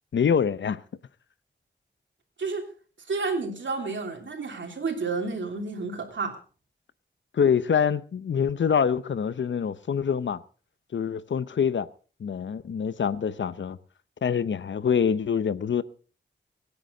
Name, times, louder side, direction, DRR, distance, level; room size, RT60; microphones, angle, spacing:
voice 1, 0.1-0.8 7.3-10.4 10.9-11.9 12.2-13.8 14.2-15.8, left 7 dB, 85° left, 0.7 m, -25 dB
voice 2, 3.1-6.3, right 4 dB, 85° right, 3.1 m, -30 dB
24.0 x 9.8 x 3.9 m
wide cardioid pair, 95°, 19 cm